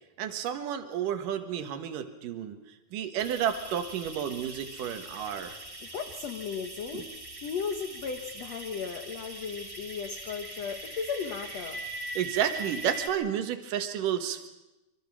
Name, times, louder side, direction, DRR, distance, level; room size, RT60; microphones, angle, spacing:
voice 1, 0.2-2.6 2.9-5.6 6.9-7.1 12.2-14.5, right 9 dB, 60° right, 7 dB, 2.6 m, -31 dB
sound 1, 3.2-13.1, right 2 dB, 10° right, 1.5 m, -41 dB
voice 2, 5.8-7.1 7.4-11.8, left 6 dB, 80° left, 6 dB, 1.4 m, -35 dB
25.0 x 24.5 x 6.2 m, 1.0 s
omnidirectional pair, 4.9 m